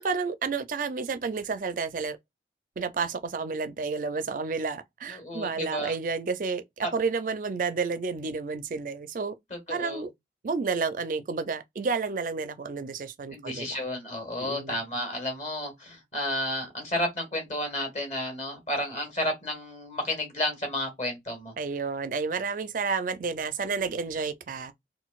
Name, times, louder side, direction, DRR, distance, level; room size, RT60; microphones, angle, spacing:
voice 1, 0.0-2.2 2.8-9.3 9.7-10.1 10.4-13.8 14.4-14.8 21.6-24.7, right 4 dB, 45° right, 0.4 m, -31 dB
voice 2, 5.1-5.9 6.8-6.9 9.5-10.0 13.3-21.5, left 1 dB, 40° left, 1.3 m, -32 dB
3.9 x 2.2 x 2.3 m
head